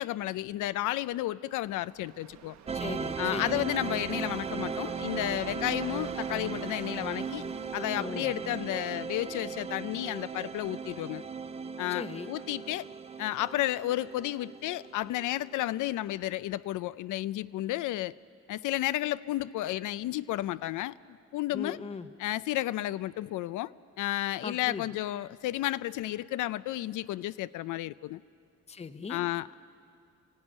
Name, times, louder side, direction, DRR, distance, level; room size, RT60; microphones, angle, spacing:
voice 1, 0.0-2.5 3.2-7.4 7.7-11.2 11.8-12.9 13.2-18.1 18.5-21.8 22.2-28.2 29.1-29.6, left 15 dB, 90° left, 15 dB, 0.5 m, -32 dB
sound 1, 1.6-9.7, right 9 dB, 65° right, 1.0 m, -52 dB
voice 2, 2.7-3.6 8.0-8.3 11.9-12.3 21.5-22.1 24.4-24.8 28.7-29.2, left 5 dB, 20° left, 10 dB, 0.8 m, -39 dB
sound 2, 2.7-15.6, right 5 dB, 20° right, 0.5 m, -37 dB
25.5 x 15.0 x 9.8 m, 2.4 s
cardioid pair, 145°, 30 cm